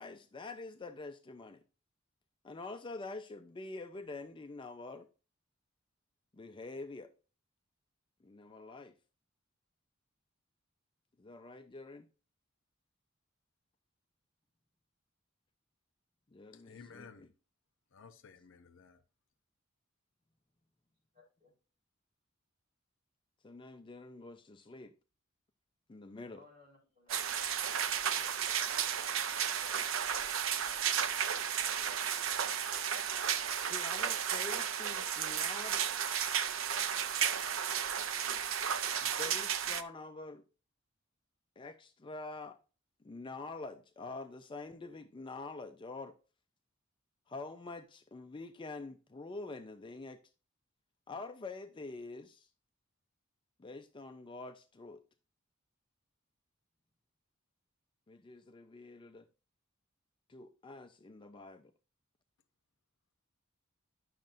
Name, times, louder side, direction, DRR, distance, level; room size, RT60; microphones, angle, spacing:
voice 1, 0.0-1.6 2.4-5.1 6.3-7.1 8.2-8.9 11.2-12.1 16.3-17.3 23.4-24.9 25.9-26.5 33.6-35.8 39.0-40.4 41.6-42.6 43.0-46.1 47.3-50.2 51.1-52.5 53.6-55.0 58.1-59.3 60.3-61.7, left 3 dB, 25° left, 0.4 m, -46 dB
voice 2, 16.7-17.3 17.9-19.0, left 5 dB, 65° left, 0.7 m, -54 dB
voice 3, 21.1-21.5 26.3-27.2 27.6-28.5 29.0-29.1 30.5-30.9, left 3 dB, 35° right, 4.7 m, -65 dB
sound 1, 27.1-39.8, right 8 dB, 70° right, 0.6 m, -33 dB
10.5 x 6.4 x 2.5 m
head